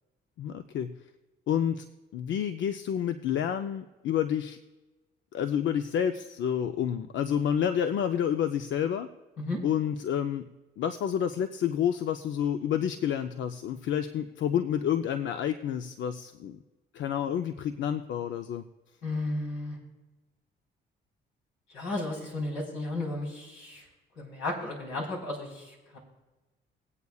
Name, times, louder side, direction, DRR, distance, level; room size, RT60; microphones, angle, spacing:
voice 1, 0.4-0.9 1.5-1.9 2.1-4.6 5.3-9.1 9.6-10.5 10.8-16.6 16.9-18.6, left 9 dB, 70° left, 8 dB, 0.6 m, -29 dB
voice 2, 19.0-19.8 21.7-23.8 24.2-26.0, left 2 dB, 90° left, -2 dB, 4.1 m, -34 dB
21.5 x 8.3 x 2.4 m, 1.1 s
cardioid pair, 90°, 20 cm